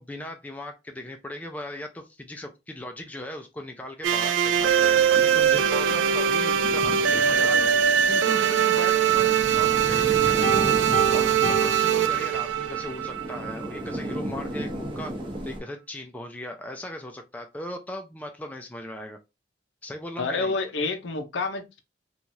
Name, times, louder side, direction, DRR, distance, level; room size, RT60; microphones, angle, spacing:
voice 1, 0.0-7.7 8.1-10.8 11.1-15.1 15.4-19.2 19.8-20.5, left 1 dB, 10° left, 0.4 m, -38 dB
sound 1, 4.0-13.9, right 8 dB, 80° right, 0.3 m, -22 dB
sound 2, 4.6-15.6, right 1 dB, 25° right, 0.8 m, -35 dB
Piano, 10.4-12.8, right 2 dB, 35° left, 0.8 m, -31 dB
voice 2, 20.2-21.8, left 3 dB, 75° left, 0.6 m, -28 dB
3.1 x 2.3 x 2.6 m
head